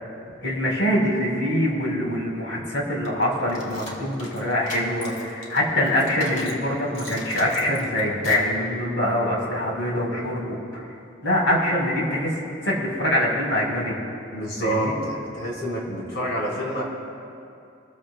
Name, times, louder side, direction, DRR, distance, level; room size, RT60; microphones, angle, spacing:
voice 1, 0.4-10.8 11.2-12.4 12.6-14.0 14.6-15.0, left 1 dB, 75° left, -3 dB, 4.0 m, -24 dB
sound 1, 3.0-6.6 6.9-8.5, left 1 dB, 40° left, 2.2 m, -40 dB
voice 2, 14.3-16.8, right 1 dB, 60° left, -4 dB, 3.9 m, -28 dB
26.5 x 14.5 x 2.2 m, 2.6 s
head